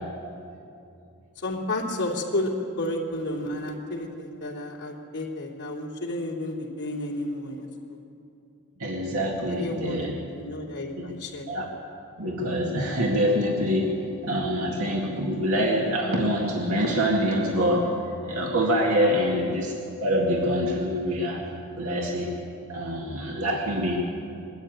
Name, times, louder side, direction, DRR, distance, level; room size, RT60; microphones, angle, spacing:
voice 1, 1.4-8.0 9.5-11.5, left 1 dB, 50° left, -2 dB, 3.1 m, -32 dB
voice 2, 8.8-10.1 11.0-11.1 11.5-11.7 12.2-14.0 14.2-18.0 18.3-21.5 21.8-22.3 22.7-24.0, equal, 85° right, -1 dB, 2.1 m, -25 dB
21.5 x 13.5 x 9.1 m, 2.6 s
head